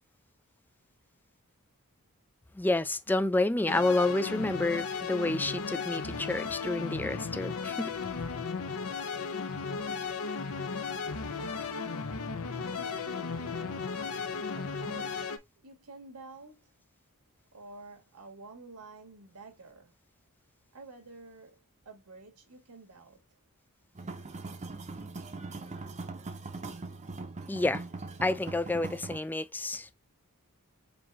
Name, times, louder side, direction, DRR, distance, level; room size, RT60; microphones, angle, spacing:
voice 1, 2.6-8.0 27.5-27.8 28.2-29.9, left 2 dB, 10° left, 0.3 m, -29 dB
sound 1, 3.7-15.4, left 5 dB, 70° left, 0.8 m, -35 dB
voice 2, 12.5-13.9 14.6-15.4 15.6-16.7 17.5-19.9 20.7-23.4, right 3 dB, 90° right, 1.8 m, -50 dB
sound 2, 23.9-29.2, right 3 dB, 30° right, 0.7 m, -41 dB
5.2 x 2.9 x 3.4 m
head